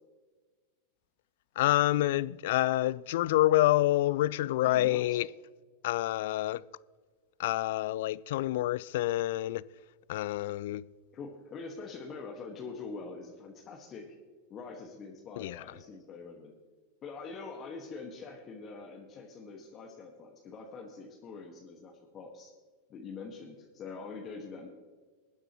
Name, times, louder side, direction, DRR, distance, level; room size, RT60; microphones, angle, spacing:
voice 1, 1.6-5.3 5.8-6.6 7.4-9.6 10.1-10.8 15.4-15.6, left 15 dB, 65° left, 0.3 m, -27 dB
voice 2, 4.6-5.2 11.1-14.1 14.5-16.5 17.0-22.5 22.9-24.7, left 4 dB, 35° left, 1.7 m, -44 dB
21.0 x 10.0 x 3.1 m
hypercardioid pair, 90°, 0 cm